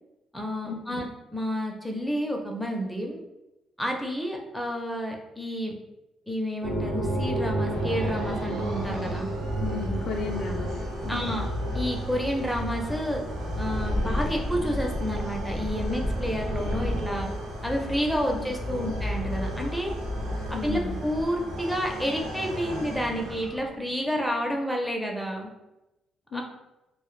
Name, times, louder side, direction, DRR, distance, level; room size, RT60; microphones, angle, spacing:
voice 1, 0.3-1.1 1.3-3.2 3.8-5.7 6.3-9.3 11.1-11.5 11.7-13.2 13.6-17.3 17.6-19.9 20.6-25.5 26.3-26.4, equal, ahead, 0 dB, 0.5 m, -30 dB
sound 1, 6.6-19.2 19.5-19.6 20.3-20.4, right 2 dB, 50° right, 0.8 m, -34 dB
sound 2, 6.9-23.9, equal, 85° right, 0.6 m, -33 dB
voice 2, 9.6-10.7 11.0-11.5 18.3-18.4 18.7-18.9 20.5-20.9 26.3-26.4, left 4 dB, 70° left, 2 dB, 0.4 m, -34 dB
2.1 x 2.0 x 3.0 m, 0.96 s
cardioid pair, 90°, 0 cm